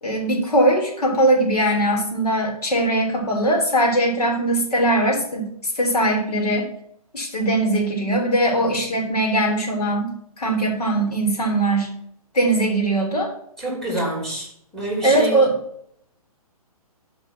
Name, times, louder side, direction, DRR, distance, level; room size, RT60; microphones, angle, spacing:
voice 1, 0.0-5.5 5.7-6.7 7.1-11.9 12.3-13.3 15.0-15.5, right 1 dB, 85° left, 1 dB, 3.4 m, -20 dB
voice 2, 13.6-15.4, right 1 dB, 5° left, -2 dB, 3.3 m, -27 dB
10.0 x 5.4 x 5.8 m, 0.69 s
hypercardioid pair, 150°, 19 cm